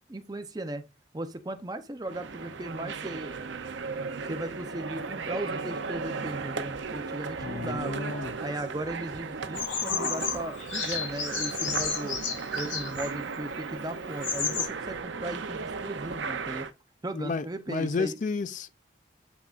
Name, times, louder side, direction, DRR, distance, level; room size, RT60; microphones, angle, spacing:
voice 1, 0.1-0.8 1.1-3.4 4.3-8.0 8.4-12.2 12.5-16.7 17.0-18.2, right 1 dB, 20° right, 0.6 m, -37 dB
sound 1, 2.1-16.7, right 4 dB, 70° right, 0.6 m, -36 dB
voice 2, 7.4-8.3 17.1-18.7, left 4 dB, 40° left, 0.4 m, -32 dB
Bird vocalization bird call bird song, 9.5-13.1 13.8-13.9 14.1-14.7, left 6 dB, 90° left, 3.9 m, -32 dB
8.2 x 5.9 x 2.5 m
head